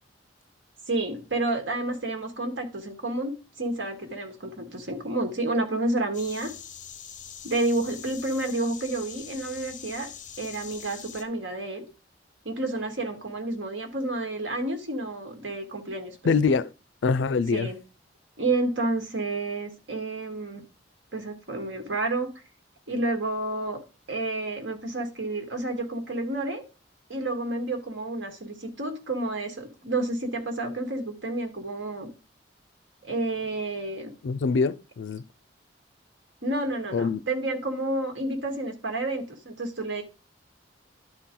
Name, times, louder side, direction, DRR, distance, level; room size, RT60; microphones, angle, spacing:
voice 1, 0.9-6.5 7.4-10.1 10.4-11.9 12.5-16.2 17.5-17.8 18.4-20.6 21.1-22.3 22.9-23.8 24.1-26.6 27.1-32.1 33.0-34.1 36.4-40.0, right 2 dB, 85° right, 1.9 m, -30 dB
sound 1, 6.1-11.2, left 8 dB, 45° left, 0.9 m, -43 dB
voice 2, 16.2-16.7 17.0-17.7 34.2-35.2 36.9-37.2, left 4 dB, 80° left, 0.4 m, -24 dB
11.5 x 4.3 x 3.8 m
head